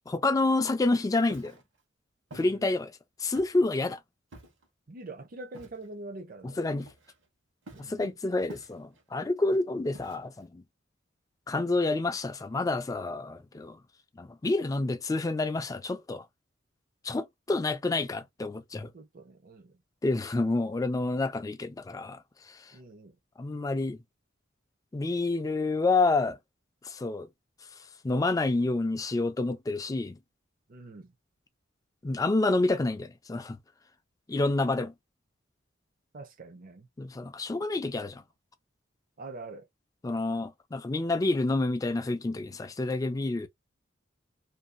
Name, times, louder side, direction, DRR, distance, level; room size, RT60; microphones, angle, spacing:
voice 1, 0.1-1.6 2.3-2.9 3.2-4.0 6.4-6.9 7.8-10.6 11.5-13.8 14.2-16.3 17.0-18.9 20.0-22.7 23.4-24.0 24.9-26.4 26.8-27.3 28.0-30.2 32.0-33.6 34.3-34.9 37.0-38.2 40.0-43.5, left 2 dB, 20° left, 0.3 m, -28 dB
Walk footsteps, 1.2-1.6 2.3-2.5 3.4-3.7 4.3-4.7 5.5-5.9 6.8-7.3 7.7-8.0 8.5-9.0 9.9-10.4, right 1 dB, 80° right, 1.1 m, -49 dB
voice 2, 4.9-6.6 7.7-8.1 18.9-19.7 22.7-23.2 30.7-31.1 36.1-36.9 39.2-39.7, right 2 dB, 45° right, 0.6 m, -44 dB
2.7 x 2.3 x 2.4 m
head